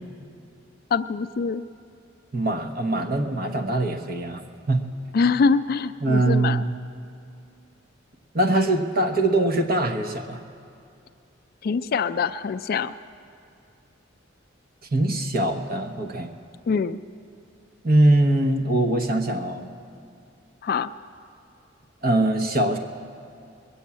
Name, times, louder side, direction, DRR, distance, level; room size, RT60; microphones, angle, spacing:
voice 1, 0.9-1.6 5.1-6.6 11.6-12.9 16.7-17.0 20.6-20.9, left 5 dB, 50° left, 12 dB, 0.3 m, -24 dB
voice 2, 2.3-4.4 4.7-4.8 6.0-6.8 8.3-10.4 14.9-16.3 17.8-19.7 22.0-22.8, right 1 dB, 50° right, 4 dB, 1.0 m, -22 dB
21.0 x 7.1 x 8.6 m, 2.6 s
head